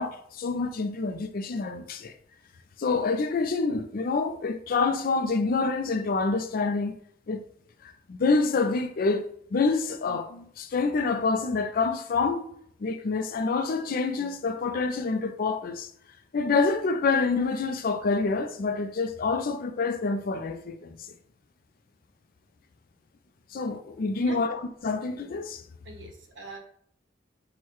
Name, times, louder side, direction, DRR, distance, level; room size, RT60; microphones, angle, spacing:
voice 1, 0.0-2.1 2.8-6.9 7.3-7.4 8.1-12.4 12.8-15.9 16.3-21.0 23.5-25.6, left 4 dB, 50° left, 0.4 m, -27 dB
voice 2, 25.8-26.6, right 2 dB, 85° right, 1.0 m, -43 dB
6.3 x 2.2 x 3.0 m
head